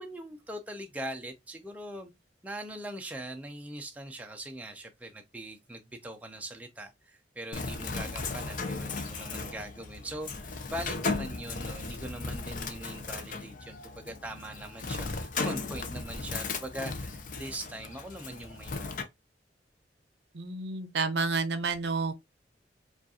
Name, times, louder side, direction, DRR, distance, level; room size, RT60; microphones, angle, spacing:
voice 1, 0.0-2.1 2.4-19.1, right 1 dB, 10° right, 0.4 m, -41 dB
Bird, 7.5-19.0, left 3 dB, 45° left, 0.5 m, -36 dB
voice 2, 20.3-22.1, right 4 dB, 65° right, 0.6 m, -30 dB
4.9 x 2.4 x 2.7 m
head